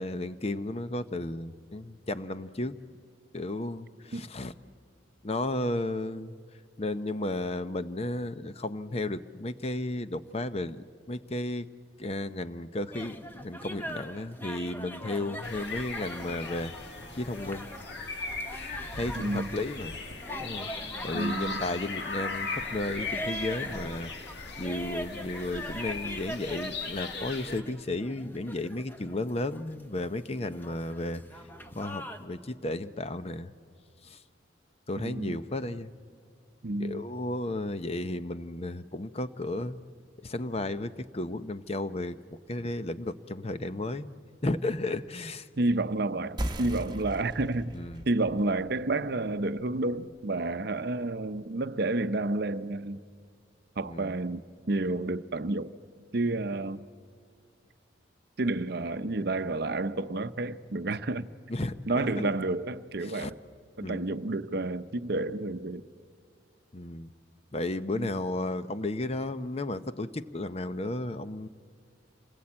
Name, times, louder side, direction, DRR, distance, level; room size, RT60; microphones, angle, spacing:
voice 1, 0.0-2.8 3.3-4.5 5.2-6.3 6.8-11.7 12.0-16.9 17.2-17.7 18.5-19.9 20.4-20.7 21.0-31.2 31.7-33.5 34.0-34.2 34.9-35.9 36.8-39.8 40.2-44.1 44.4-45.5 47.7-48.0 53.9-54.1 61.5-61.7 62.2-62.3 63.0-63.3 63.8-64.1 66.7-67.1 67.5-71.5, left 2 dB, 35° left, 0.8 m, -34 dB
sound 1, 12.9-32.2, equal, 10° left, 1.1 m, -42 dB
sound 2, 15.4-27.6, left 3 dB, 60° left, 1.8 m, -38 dB
voice 2, 19.1-19.6 21.1-21.7 35.0-35.4 36.6-37.1 45.6-47.7 48.1-53.0 53.8-55.7 56.1-56.9 58.4-61.3 61.9-63.4 63.8-65.8 68.0-68.1, right 2 dB, 55° right, 0.8 m, -30 dB
sound 3, 46.4-51.5, right 1 dB, 20° right, 1.1 m, -40 dB
27.5 x 20.5 x 8.7 m
head